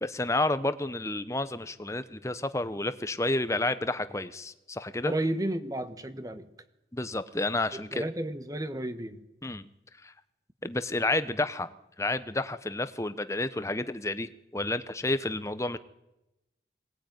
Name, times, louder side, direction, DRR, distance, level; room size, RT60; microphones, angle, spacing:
voice 1, 0.0-5.1 6.9-8.0 9.4-9.7 10.0-10.1 10.6-15.8, left 2 dB, 15° left, 13 dB, 0.9 m, -30 dB
voice 2, 5.0-6.5 7.7-9.2, right 1 dB, 20° right, 11 dB, 1.3 m, -32 dB
21.5 x 18.5 x 9.3 m, 0.93 s
head